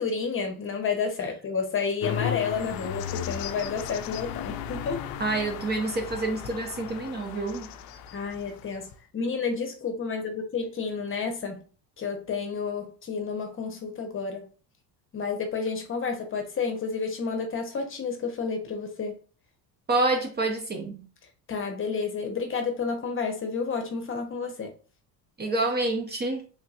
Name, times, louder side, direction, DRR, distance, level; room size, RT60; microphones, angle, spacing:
voice 1, 0.0-5.0 8.1-11.6 12.0-14.5 15.1-19.2 21.5-24.7, left 5 dB, 30° left, 0.8 m, -30 dB
sound 1, 2.0-9.0, left 10 dB, 65° left, 0.5 m, -35 dB
voice 2, 5.2-7.7 19.9-21.1 25.4-26.4, right 2 dB, 25° right, 0.6 m, -27 dB
3.4 x 2.8 x 2.4 m
cardioid pair, 120°, 40 cm